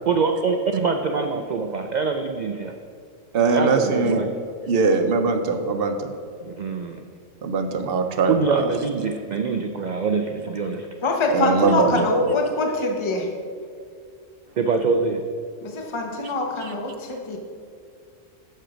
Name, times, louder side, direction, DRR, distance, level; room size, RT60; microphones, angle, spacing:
voice 1, 0.1-2.7 3.5-4.3 6.4-7.0 8.3-10.9 14.6-15.2, right 4 dB, 85° right, 5 dB, 0.4 m, -24 dB
voice 2, 3.3-4.2 4.7-6.1 7.4-8.7 11.3-12.2 16.6-16.7, right 4 dB, 55° right, 7 dB, 0.8 m, -21 dB
voice 3, 11.0-13.3 15.6-17.4, left 2 dB, 25° left, 2 dB, 0.8 m, -24 dB
7.7 x 6.7 x 5.0 m, 2.2 s
omnidirectional pair, 1.3 m